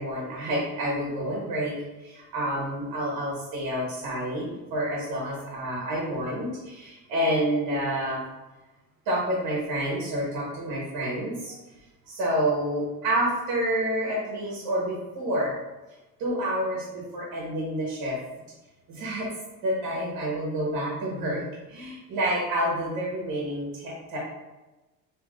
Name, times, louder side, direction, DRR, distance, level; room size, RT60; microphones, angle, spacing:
voice 1, 0.0-8.2 9.0-11.6 12.1-15.5 16.2-18.2 18.9-19.3 19.6-21.4 21.7-24.2, right 1 dB, 55° right, -5 dB, 1.0 m, -28 dB
3.0 x 2.9 x 2.4 m, 1.1 s
cardioid pair, 145°, 38 cm